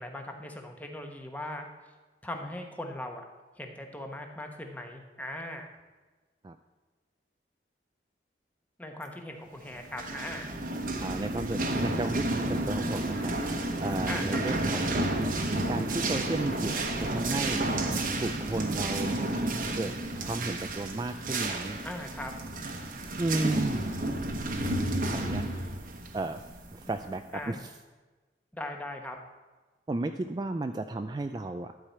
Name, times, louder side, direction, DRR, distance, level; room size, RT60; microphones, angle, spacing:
voice 1, 0.0-1.7 2.2-3.3 3.6-5.7 8.8-10.6 14.1-14.6 21.8-22.3 27.3-27.7 28.5-29.2, left 1 dB, 10° left, 3 dB, 1.1 m, -39 dB
sound 1, 9.8-27.2, right 2 dB, 50° right, 1.0 m, -31 dB
voice 2, 11.0-13.3 13.8-15.1 15.7-17.6 18.1-19.2 19.7-21.8 23.2-24.0 25.1-25.4 26.1-26.4 26.7-27.2 27.5-27.7 29.9-31.8, right 2 dB, 25° right, 7 dB, 0.3 m, -33 dB
12.0 x 4.9 x 7.8 m, 1.3 s
head